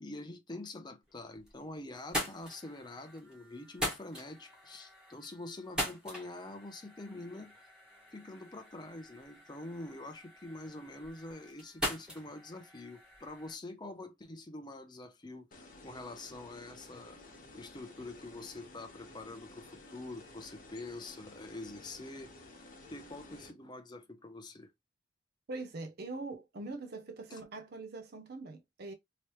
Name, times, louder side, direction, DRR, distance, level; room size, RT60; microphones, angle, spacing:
voice 1, 0.0-7.5 8.1-17.2 17.5-22.3 22.9-24.7 27.3-27.4, left 2 dB, 20° left, 0.6 m, -46 dB
sound 1, 1.1-1.6 1.9-13.5, equal, 5° right, 1.5 m, -42 dB
sound 2, 15.5-23.5, left 2 dB, 45° left, 1.2 m, -54 dB
voice 2, 25.5-28.9, right 3 dB, 55° right, 0.6 m, -43 dB
3.1 x 3.0 x 2.9 m
head